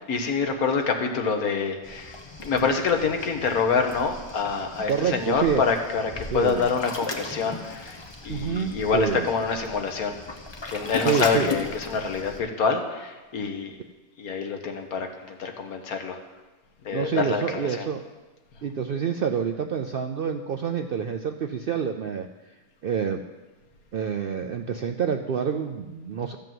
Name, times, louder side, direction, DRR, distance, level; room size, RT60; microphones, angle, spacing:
voice 1, 0.0-10.2 10.7-13.7 14.2-16.2 16.8-17.9, left 5 dB, 90° left, 5 dB, 1.6 m, -26 dB
Waves surf, 1.8-12.4, left 3 dB, 25° left, 0.8 m, -37 dB
voice 2, 4.9-5.6 6.3-6.6 8.3-9.3 11.0-11.5 16.9-18.0 18.6-22.3 22.8-23.2 23.9-26.4, right 7 dB, 70° right, 6 dB, 0.5 m, -27 dB
13.5 x 5.3 x 7.6 m, 1.2 s
omnidirectional pair, 1.5 m